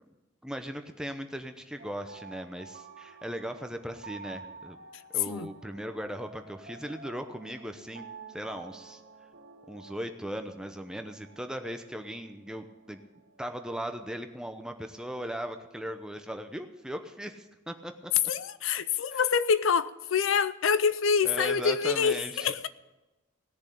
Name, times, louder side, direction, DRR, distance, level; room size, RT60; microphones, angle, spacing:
voice 1, 0.4-4.8 5.1-9.0 9.7-13.0 13.4-18.1 19.1-19.2 21.2-22.7, equal, 5° right, 0.8 m, -38 dB
sound 1, 1.8-16.0, right 4 dB, 50° right, 1.6 m, -50 dB
voice 2, 18.3-22.7, left 6 dB, 70° left, 0.5 m, -26 dB
17.5 x 6.9 x 8.5 m
head